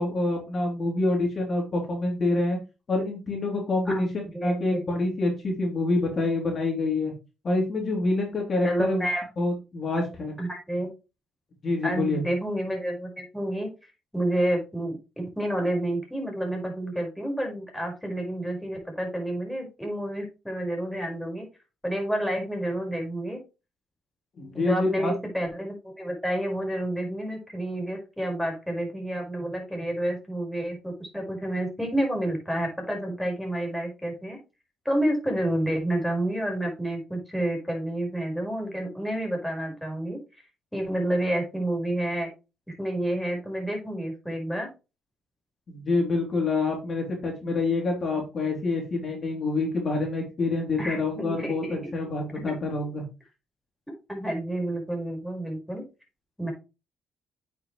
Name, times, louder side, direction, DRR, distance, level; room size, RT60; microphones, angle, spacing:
voice 1, 0.0-2.6 2.9-4.1 4.4-7.1 7.4-9.1 9.4-10.3 11.6-12.2 24.4-25.1 45.7-53.0, left 2 dB, 45° left, 1 dB, 3.2 m, -27 dB
voice 2, 8.6-9.3 10.4-10.9 11.8-13.7 14.1-21.5 21.8-23.4 24.5-34.4 34.9-40.2 40.7-42.3 42.8-44.7 50.8-51.8 54.1-55.8 56.4-56.5, right 1 dB, 5° left, 1 dB, 5.2 m, -29 dB
8.9 x 6.8 x 3.2 m, 0.28 s
cardioid pair, 90°, 0 cm